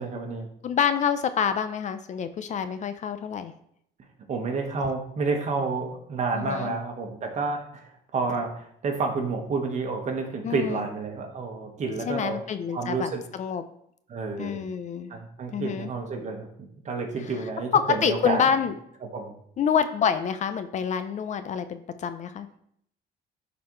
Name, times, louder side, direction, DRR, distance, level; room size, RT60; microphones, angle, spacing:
voice 1, 0.0-0.5 4.3-12.4 12.7-13.2 14.1-14.6 15.1-18.4 19.1-19.3, right 4 dB, 45° right, 2 dB, 1.5 m, -30 dB
voice 2, 0.6-3.5 6.3-6.8 10.4-10.8 12.1-13.1 13.4-13.6 14.4-15.1 15.5-15.9 17.7-18.7 19.6-22.5, left 7 dB, 45° left, 11 dB, 0.5 m, -27 dB
11.0 x 4.1 x 3.2 m, 0.70 s
cardioid pair, 110°, 17 cm